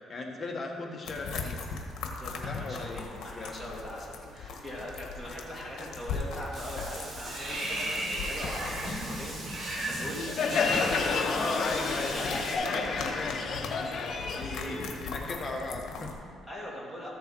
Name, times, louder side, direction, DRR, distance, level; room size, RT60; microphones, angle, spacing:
voice 1, 0.1-1.7 2.5-3.5 11.2-14.0 14.3-16.4, left 2 dB, 30° left, 1 dB, 1.4 m, -37 dB
sound 1, 1.0-16.2, left 4 dB, 65° left, 1.4 m, -40 dB
voice 2, 2.2-12.8 16.5-17.1, equal, 5° right, -6 dB, 2.8 m, -41 dB
Water / Bathtub (filling or washing), 6.5-12.5, right 1 dB, 45° right, 2.3 m, -36 dB
Crowd, 10.2-15.6, left 4 dB, 50° left, 1.0 m, -30 dB
14.0 x 6.8 x 4.7 m, 2.3 s
cardioid pair, 120°, 0 cm